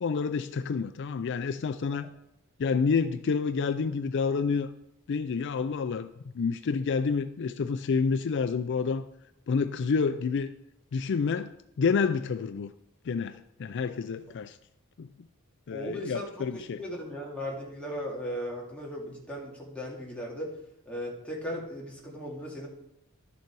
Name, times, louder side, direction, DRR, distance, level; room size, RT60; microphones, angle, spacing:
voice 1, 0.0-2.1 2.6-4.7 5.1-6.1 6.3-9.0 9.5-10.5 10.9-12.7 13.0-14.6 15.0-15.1 15.7-16.8, left 5 dB, 55° left, 11 dB, 0.4 m, -28 dB
voice 2, 15.7-20.5 20.9-22.7, equal, 5° left, -3 dB, 2.3 m, -37 dB
12.0 x 6.9 x 4.7 m, 0.83 s
head